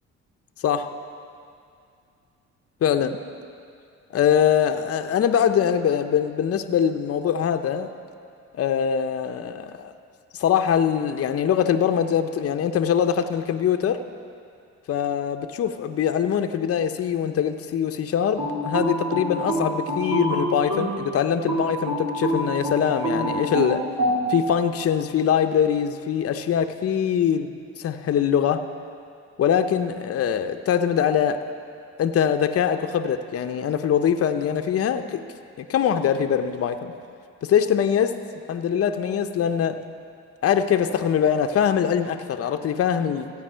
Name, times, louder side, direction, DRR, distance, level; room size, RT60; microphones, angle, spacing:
voice 1, 2.8-3.2 4.1-7.9 8.5-9.9 10.3-14.0 14.9-23.9 24.3-28.7 29.4-31.4 32.0-35.2 35.6-36.9 37.4-38.2 38.5-39.8 40.4-43.3, left 8 dB, 50° left, 7 dB, 0.7 m, -23 dB
sound 1, 18.4-21.0 21.5-24.2, equal, 85° right, 4.0 m, -25 dB
15.5 x 8.5 x 5.6 m, 2.4 s
cardioid pair, 90°, 30 cm